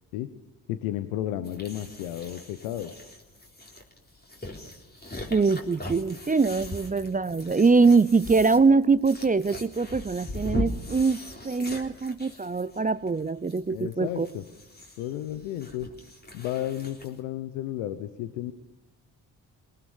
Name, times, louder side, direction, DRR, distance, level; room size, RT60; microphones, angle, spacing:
voice 1, 0.7-2.9 13.7-14.4 15.0-15.9 16.3-18.5, left 12 dB, 80° left, 12 dB, 1.1 m, -33 dB
sound 1, 1.4-17.2, left 2 dB, 20° left, 3.7 m, -40 dB
voice 2, 5.3-14.3, right 4 dB, 15° right, 18 dB, 0.6 m, -23 dB
21.0 x 19.0 x 7.1 m, 1.0 s
hypercardioid pair, 45°, 49 cm